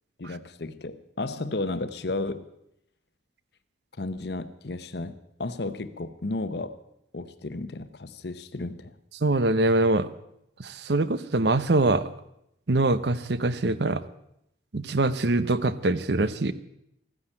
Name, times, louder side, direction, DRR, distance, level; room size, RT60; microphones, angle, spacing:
voice 1, 0.2-2.5 4.0-6.8 7.1-8.9, left 2 dB, 65° left, 12 dB, 0.8 m, -33 dB
voice 2, 9.2-10.1 10.6-12.1 12.7-14.0 14.7-16.5, right 2 dB, 65° right, 15 dB, 0.8 m, -23 dB
14.5 x 9.9 x 8.8 m, 0.78 s
head